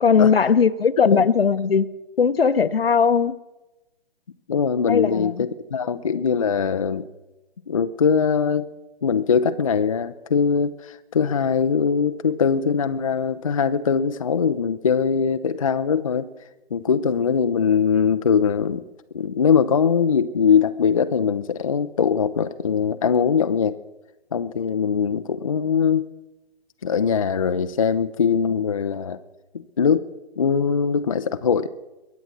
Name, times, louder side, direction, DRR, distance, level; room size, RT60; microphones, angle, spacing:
voice 1, 0.0-1.9 2.2-3.3 4.9-5.4, left 6 dB, 65° left, 14 dB, 0.9 m, -18 dB
voice 2, 4.5-7.0 7.7-8.7 9.0-16.3 16.7-18.8 19.1-23.8 24.3-26.1 26.8-29.2 29.8-30.1 30.4-31.7, left 6 dB, 35° left, 9 dB, 0.5 m, -21 dB
22.5 x 8.0 x 6.2 m, 1.0 s
figure-of-eight pair, 135°, 31 cm